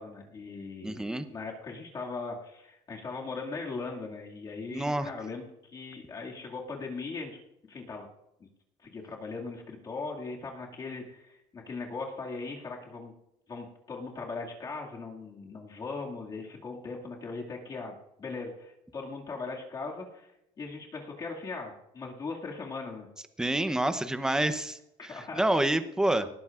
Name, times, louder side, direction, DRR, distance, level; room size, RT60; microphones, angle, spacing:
voice 1, 0.0-7.4 7.7-8.1 8.4-8.5 8.8-13.1 13.5-23.1 24.2-24.6 25.0-25.7, left 4 dB, 30° left, -2 dB, 2.1 m, -39 dB
voice 2, 0.8-1.2 4.7-5.1 23.4-26.3, right 1 dB, 5° right, 10 dB, 0.7 m, -28 dB
19.0 x 15.0 x 2.5 m, 0.83 s
cardioid pair, 145°, 14 cm